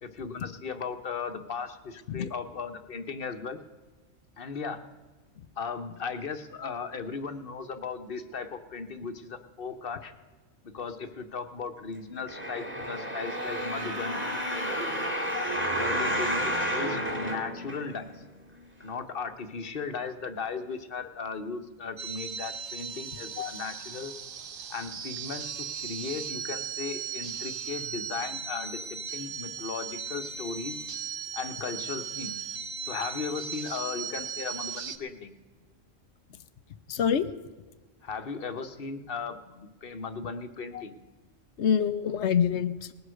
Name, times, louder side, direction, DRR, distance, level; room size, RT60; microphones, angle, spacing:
voice 1, 0.0-3.6 4.4-4.8 5.6-10.1 10.6-15.0 15.7-18.2 18.8-24.1 24.7-25.5 25.8-30.8 31.3-32.4 32.8-35.3 38.0-41.0, left 5 dB, 50° left, 9 dB, 1.2 m, -37 dB
sound 1, 12.3-18.2 18.8-18.9, equal, 10° right, 2.2 m, -31 dB
sound 2, 22.0-35.0, right 7 dB, 50° right, 0.9 m, -37 dB
voice 2, 36.9-37.3 40.7-40.8 41.6-42.9, left 8 dB, 70° left, 13 dB, 0.9 m, -26 dB
19.5 x 8.0 x 6.4 m, 1.3 s
omnidirectional pair, 1.3 m